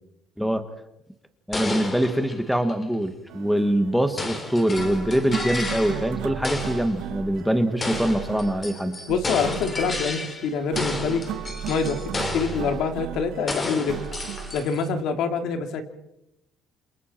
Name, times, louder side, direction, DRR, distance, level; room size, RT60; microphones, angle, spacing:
sound 1, 1.5-2.9 4.2-6.2 6.4-7.0 7.8-10.5 10.7-12.7 13.5-14.9, left 2 dB, 20° left, 2.8 m, -32 dB
voice 1, 1.5-9.0, right 1 dB, ahead, 8 dB, 1.4 m, -24 dB
sound 2, 3.3-15.0, right 8 dB, 70° right, 1.9 m, -36 dB
voice 2, 9.1-11.2 11.7-14.0 14.5-15.8, left 5 dB, 65° left, 6 dB, 2.8 m, -26 dB
28.0 x 27.5 x 4.4 m, 0.83 s
cardioid pair, 155°, 0 cm